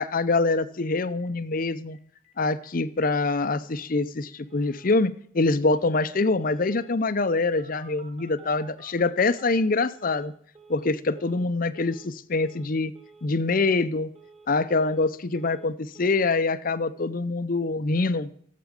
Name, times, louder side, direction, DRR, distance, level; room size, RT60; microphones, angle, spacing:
voice 1, 0.0-2.0 2.4-10.3 10.7-12.9 13.2-14.1 14.5-18.3, left 3 dB, 45° left, 14 dB, 0.6 m, -25 dB
Telephone, 0.8-0.9 1.2-1.3 1.5-1.6 1.9-2.3 2.6-2.7 3.0-3.3 3.7-3.8 4.3-5.0 5.7-6.0 6.2-7.0 7.6-10.3 10.5-10.9 11.1-11.5 11.7-12.1 12.3-12.7 12.9-13.3 13.5-13.9 14.1-15.1 15.3-15.7 15.9-16.2, right 3 dB, 30° right, 2.3 m, -53 dB
15.5 x 7.6 x 5.2 m, 0.62 s
head